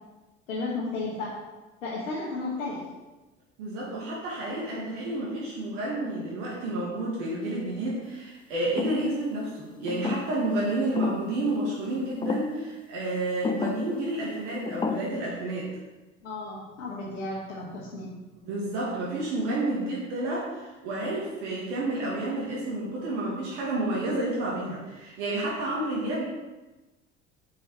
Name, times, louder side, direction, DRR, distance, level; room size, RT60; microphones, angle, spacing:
voice 1, 0.5-1.4 1.8-2.8 16.2-18.1, left 3 dB, 85° left, -7 dB, 1.3 m, -33 dB
voice 2, 3.6-15.8 18.5-26.2, right 1 dB, 65° right, -5 dB, 1.9 m, -30 dB
sound 1, 8.8-9.1 9.9-10.5 11.0-11.3 12.2-12.6 13.4-13.9 14.7-15.0, left 5 dB, 15° left, 0.5 m, -31 dB
7.0 x 4.9 x 4.6 m, 1.1 s
hypercardioid pair, 65°, 37 cm